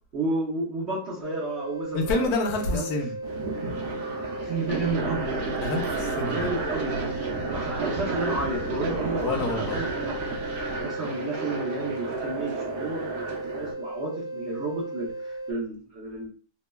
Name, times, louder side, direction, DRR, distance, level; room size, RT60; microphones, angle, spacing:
voice 1, 0.1-2.3 2.7-2.9 4.4-5.3 6.3-7.0 7.5-10.2 10.7-16.3, right 2 dB, 55° right, -7 dB, 0.8 m, -31 dB
sound 1, 1.2-15.5, right 2 dB, 55° left, 0.8 m, -36 dB
voice 2, 1.9-3.1 5.5-6.5 9.2-9.8, left 3 dB, 70° left, 4 dB, 1.1 m, -28 dB
sound 2, 3.2-13.7, right 3 dB, 75° right, 1.2 m, -33 dB
sound 3, 4.7-10.9, right 2 dB, 20° left, 0.8 m, -37 dB
3.2 x 2.1 x 2.2 m, 0.41 s
omnidirectional pair, 1.8 m